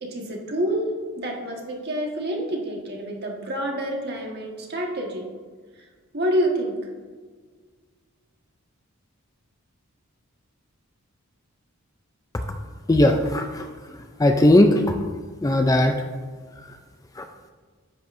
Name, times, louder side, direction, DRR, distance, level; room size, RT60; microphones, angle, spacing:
voice 1, 0.0-0.9 1.2-5.3 6.1-6.8, right 1 dB, 50° right, 0 dB, 1.5 m, -27 dB
voice 2, 12.9-13.7 14.2-14.8 15.4-16.0 17.2-17.3, left 1 dB, 15° left, 5 dB, 0.4 m, -17 dB
10.0 x 8.2 x 2.6 m, 1.5 s
head